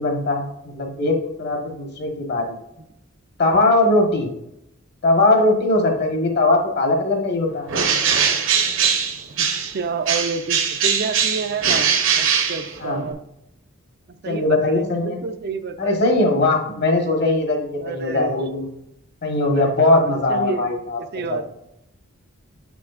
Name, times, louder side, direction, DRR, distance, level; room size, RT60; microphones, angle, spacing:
voice 1, 0.0-2.6 3.4-4.3 5.0-7.8 12.8-13.0 14.3-15.2 15.8-18.7 19.2-21.0 21.3-21.4, left 2 dB, 50° left, 2 dB, 1.2 m, -20 dB
Bird, 7.7-9.8 10.1-13.1, right 7 dB, 65° right, 0.9 m, -21 dB
voice 2, 9.4-11.9 12.2-13.2 14.1-16.2 17.8-18.5 19.5-20.7 21.0-21.5, right 4 dB, 50° right, 9 dB, 0.4 m, -29 dB
6.6 x 6.0 x 2.4 m, 0.79 s
head